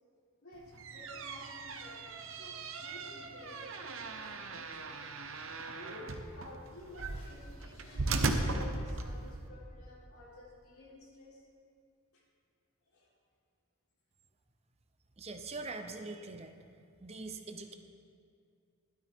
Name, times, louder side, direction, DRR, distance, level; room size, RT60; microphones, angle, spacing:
voice 1, 0.4-5.1 5.7-11.5 12.1-12.2 12.9-13.1, left 1 dB, 90° left, -6 dB, 3.9 m, -52 dB
sound 1, 0.6-9.5, right 3 dB, 65° right, 0.9 m, -38 dB
voice 2, 15.2-16.5 17.0-17.7, right 3 dB, 30° right, 6 dB, 0.7 m, -43 dB
16.0 x 12.0 x 3.6 m, 2.4 s
head